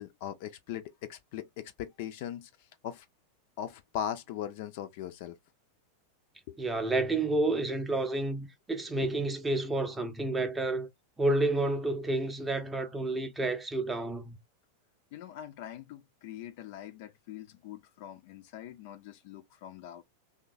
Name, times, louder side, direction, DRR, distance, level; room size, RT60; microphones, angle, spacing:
voice 1, 0.0-2.5 2.8-3.1 3.6-5.4 6.5-6.6 7.7-7.8 8.9-9.1 15.1-20.0, left 10 dB, 50° left, 0.4 m, -40 dB
voice 2, 6.6-10.9 11.2-14.4, right 2 dB, 10° right, 0.6 m, -30 dB
3.2 x 2.2 x 2.5 m
figure-of-eight pair, 90°, 0 cm